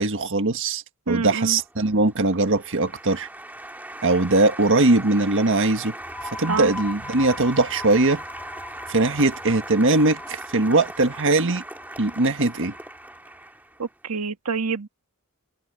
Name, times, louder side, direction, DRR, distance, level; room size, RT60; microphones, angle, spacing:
voice 1, 0.0-3.3 4.0-5.9 6.4-8.2 8.9-11.6 12.0-12.7, right 2 dB, 60° right, 1.7 m, -21 dB
voice 2, 1.1-1.6 6.5-6.7 13.8-14.9, right 4 dB, 85° right, 1.6 m, -27 dB
Applause, 1.5-14.0, right 1 dB, 10° right, 2.2 m, -39 dB
sound 1, 5.9-13.3, left 2 dB, 10° left, 3.5 m, -40 dB
open air
head